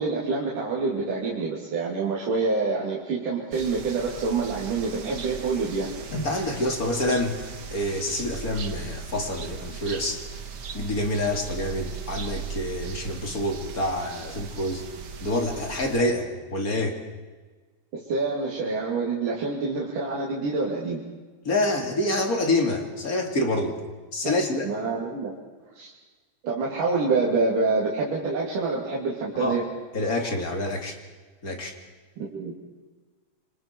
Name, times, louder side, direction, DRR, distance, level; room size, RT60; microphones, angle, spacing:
voice 1, 0.0-5.9 17.9-21.0 24.2-24.3 24.6-25.3 25.8-25.9 26.4-29.7 32.2-32.5, right 4 dB, 80° right, -4 dB, 4.3 m, -27 dB
sound 1, 3.5-16.0, right 6 dB, 45° right, 1.4 m, -38 dB
voice 2, 6.1-7.4 7.7-10.2 10.7-14.8 15.2-17.0 21.4-23.8 24.1-24.7 29.4-29.6 29.9-31.0 31.4-31.7, left 1 dB, 30° left, 3 dB, 2.7 m, -27 dB
28.0 x 25.0 x 4.6 m, 1.4 s
omnidirectional pair, 3.6 m